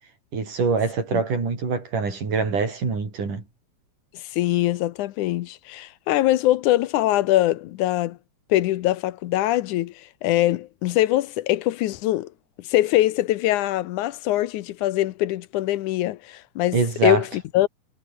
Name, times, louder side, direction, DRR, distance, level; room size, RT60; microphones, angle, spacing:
voice 1, 0.3-3.4 16.7-17.2, right 4 dB, 80° right, 7.2 m, -24 dB
voice 2, 4.1-8.2 8.5-12.3 12.6-17.7, left 15 dB, 80° left, 2.3 m, -23 dB
omnidirectional pair, 3.6 m